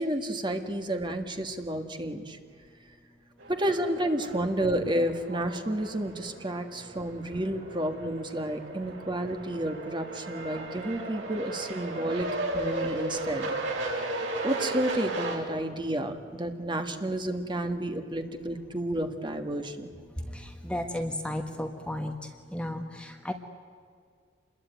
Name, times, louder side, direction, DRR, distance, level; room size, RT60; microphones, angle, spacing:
voice 1, 0.0-2.4 3.5-13.6 13.9-14.2 14.4-19.9, right 1 dB, 25° right, 6 dB, 1.8 m, -31 dB
sound 1, 3.4-15.4, right 2 dB, 90° right, 6.5 m, -36 dB
voice 2, 20.3-22.1 22.5-23.3, left 1 dB, 5° left, 5 dB, 1.3 m, -33 dB
27.5 x 21.5 x 9.2 m, 2.1 s
head